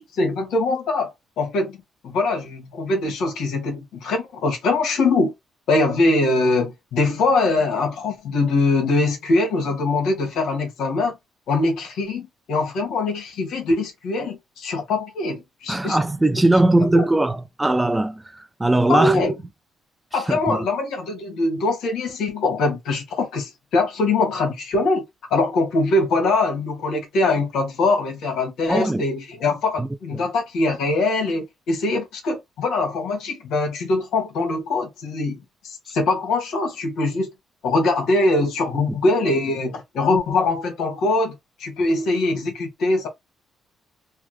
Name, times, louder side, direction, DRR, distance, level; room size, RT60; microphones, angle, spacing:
voice 1, 0.0-1.8 2.0-5.3 5.7-11.2 11.5-16.0 16.8-17.0 18.9-19.3 20.1-25.0 25.3-37.3 37.6-43.1, left 2 dB, 80° left, 1.3 m, -22 dB
voice 2, 15.7-19.2 20.1-20.6 28.7-29.0 29.8-30.3 38.9-39.0, right 2 dB, 10° right, 0.4 m, -20 dB
3.5 x 2.1 x 3.1 m
cardioid pair, 90°, 0 cm